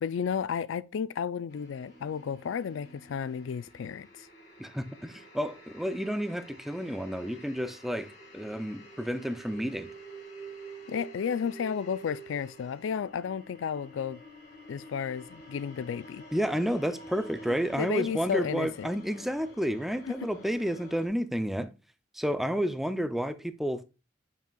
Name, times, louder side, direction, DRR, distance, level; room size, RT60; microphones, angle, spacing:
voice 1, 0.0-4.3 10.9-14.2 14.7-16.2 17.7-18.9 20.1-20.3, left 7 dB, 75° left, 0.3 m, -33 dB
sound 1, 1.5-21.1, right 1 dB, 50° left, 1.7 m, -49 dB
voice 2, 4.6-8.1 8.3-9.9 16.3-21.7 22.1-23.8, equal, ahead, 0.4 m, -31 dB
7.6 x 5.5 x 2.3 m
head